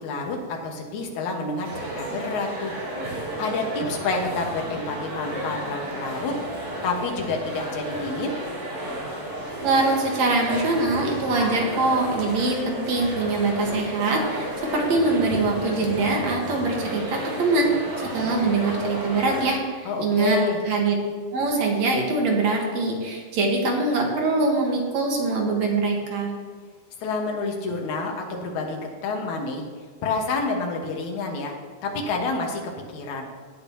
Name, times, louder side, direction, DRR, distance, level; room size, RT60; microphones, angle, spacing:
voice 1, 0.0-2.7 3.4-6.3 6.8-8.3 19.9-20.6 27.0-28.8 29.0-29.6 30.0-31.5 31.8-32.6 32.9-33.3, left 3 dB, 70° left, 1 dB, 2.7 m, -28 dB
sound 1, 1.6-19.4, right 1 dB, 80° right, 5.7 m, -33 dB
voice 2, 9.6-17.7 18.0-20.4 20.6-20.9 21.3-26.3, right 3 dB, 60° right, 0 dB, 2.6 m, -23 dB
18.0 x 9.3 x 2.9 m, 1.5 s
omnidirectional pair, 3.7 m